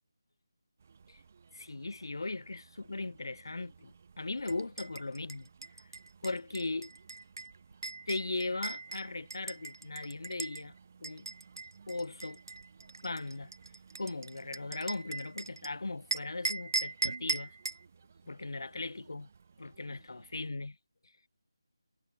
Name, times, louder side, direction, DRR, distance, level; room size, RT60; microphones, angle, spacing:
sound 1, 0.8-20.5, right 5 dB, 25° right, 3.8 m, -59 dB
voice 1, 1.5-5.5 6.2-6.9 8.1-10.7 11.0-11.3 11.9-12.4 13.0-13.5 14.0-17.6 18.3-19.3 19.6-20.8, left 3 dB, 65° left, 1.9 m, -38 dB
sound 2, 4.5-10.6 11.0-15.7 16.1-17.8, right 3 dB, 55° right, 1.5 m, -39 dB
figure-of-eight pair, 180°, 2 cm